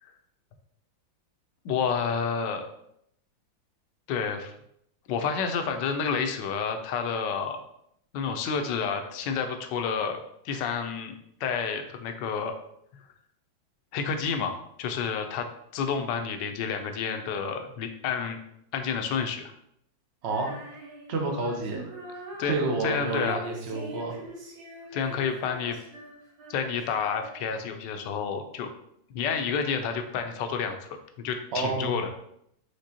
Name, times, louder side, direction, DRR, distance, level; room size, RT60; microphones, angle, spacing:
voice 1, 1.6-2.7 4.1-4.5 5.1-7.6 8.1-10.2 10.4-11.1 11.4-12.5 12.9-13.0 13.9-15.5 15.7-18.4 18.7-19.5 22.4-22.5 22.8-23.5 24.9-25.8 26.5-28.7 29.1-30.9 31.2-32.1, left 6 dB, 75° left, 6 dB, 1.2 m, -29 dB
voice 2, 20.2-20.5 21.1-21.8 22.4-24.2 31.5-32.1, right 3 dB, 65° right, 0 dB, 0.6 m, -29 dB
Female singing, 20.2-27.6, right 1 dB, 85° right, 2.1 m, -43 dB
5.1 x 3.3 x 2.8 m, 0.73 s
omnidirectional pair, 2.1 m